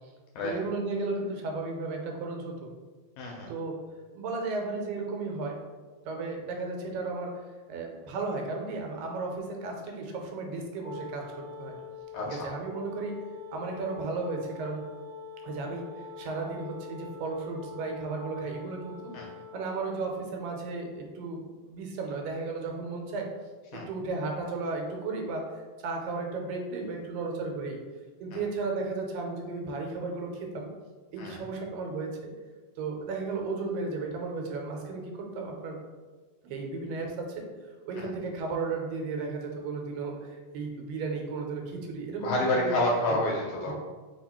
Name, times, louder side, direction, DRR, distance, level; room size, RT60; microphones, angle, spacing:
voice 1, 0.4-2.7 3.5-3.8 4.2-5.6 6.0-7.3 7.7-11.7 12.3-13.1 13.5-14.8 15.4-15.9 16.2-19.1 19.5-23.3 23.7-25.4 25.8-27.8 28.2-30.7 31.1-32.3 32.8-35.8 36.4-37.5 37.9-42.7 43.7-43.8, right 3 dB, 85° right, 2 dB, 2.5 m, -34 dB
voice 2, 3.2-3.5 12.1-12.5 19.1-19.3 23.7-23.9 28.3-28.4 31.2-31.4 38.0-38.1 42.2-43.7, left 1 dB, 80° left, -1 dB, 1.8 m, -29 dB
Wind instrument woodwind instrument, 10.8-20.0, left 5 dB, 65° right, 1.2 m, -45 dB
5.2 x 2.4 x 4.2 m, 1.4 s
omnidirectional pair, 3.9 m